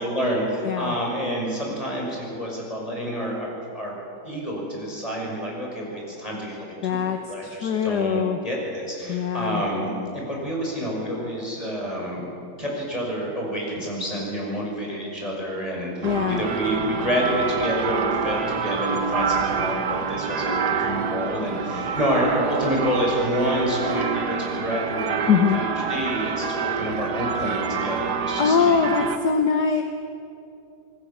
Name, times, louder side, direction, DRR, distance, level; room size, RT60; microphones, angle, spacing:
voice 1, 0.0-3.9 4.2-7.0 7.3-12.3 12.6-28.7, equal, 20° left, -2 dB, 6.1 m, -28 dB
voice 2, 6.8-8.4 9.1-9.6 16.0-16.4 25.3-25.6 28.4-29.8, left 6 dB, 60° left, 5 dB, 1.6 m, -22 dB
sound 1, 16.0-29.2, right 5 dB, 60° right, 1.8 m, -27 dB
26.5 x 19.0 x 7.3 m, 2.6 s
omnidirectional pair, 2.0 m